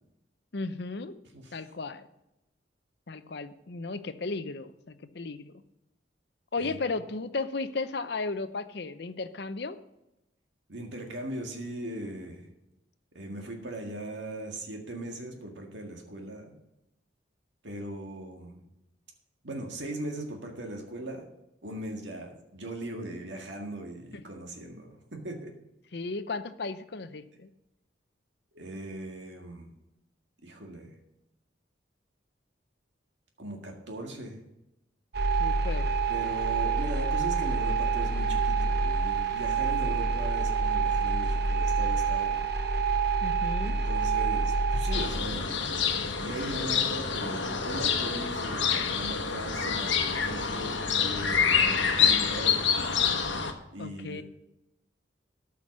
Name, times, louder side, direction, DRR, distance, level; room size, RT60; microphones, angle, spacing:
voice 1, 0.5-1.1 1.5-2.0 3.1-5.5 6.5-9.8 24.1-24.2 25.9-27.5 35.4-36.0 43.2-43.7 53.8-54.2, left 3 dB, 60° left, 12 dB, 0.7 m, -35 dB
voice 2, 10.7-12.5 13.1-16.5 17.6-18.6 19.4-21.3 21.6-25.5 28.5-29.7 30.4-31.0 33.4-34.4 36.1-42.4 43.6-45.4 46.2-52.8 53.7-54.2, right 1 dB, 70° right, 2 dB, 1.9 m, -39 dB
sound 1, 35.1-45.1, right 4 dB, 55° right, 1.0 m, -27 dB
sound 2, 44.9-53.5, left 6 dB, 85° left, 1.2 m, -27 dB
13.5 x 6.0 x 6.1 m, 0.90 s
head